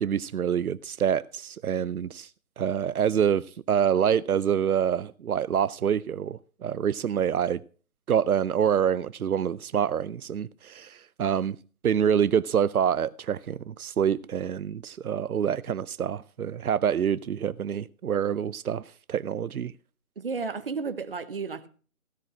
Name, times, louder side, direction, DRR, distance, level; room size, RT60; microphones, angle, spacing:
voice 1, 0.0-2.3 2.6-7.6 8.1-11.6 11.8-18.8 19.1-19.7, right 8 dB, 85° right, 0.6 m, -26 dB
voice 2, 20.2-21.7, right 5 dB, 40° right, 1.0 m, -32 dB
16.0 x 6.4 x 5.9 m
figure-of-eight pair, 165°, 42 cm